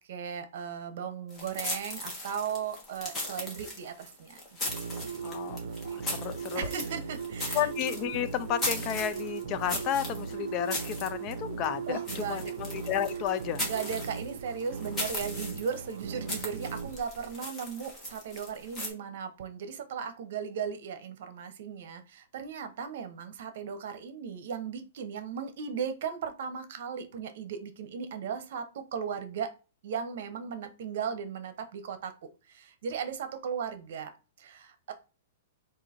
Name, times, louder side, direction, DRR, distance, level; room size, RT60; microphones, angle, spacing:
voice 1, 0.0-4.4 4.9-5.1 6.5-7.7 11.9-12.5 13.6-29.5 29.8-32.1 32.5-34.1 34.4-34.9, right 7 dB, 60° right, 0.9 m, -36 dB
sound 1, 1.3-18.9, left 1 dB, 10° left, 1.2 m, -38 dB
sound 2, 4.7-17.0, right 5 dB, 80° right, 0.5 m, -38 dB
voice 2, 5.2-5.6 5.9-6.7 7.5-13.6, left 10 dB, 30° left, 0.3 m, -32 dB
3.8 x 2.6 x 4.3 m
hypercardioid pair, 165°, 0 cm